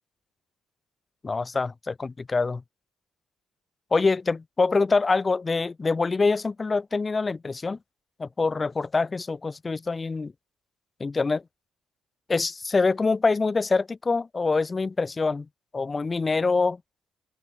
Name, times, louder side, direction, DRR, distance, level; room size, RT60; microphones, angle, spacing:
voice 1, 1.2-2.6 3.9-7.8 8.2-10.3 11.0-11.4 12.3-15.5 15.7-16.8, left 4 dB, 20° left, 1.4 m, -25 dB
open air
cardioid pair, 160°, 0 cm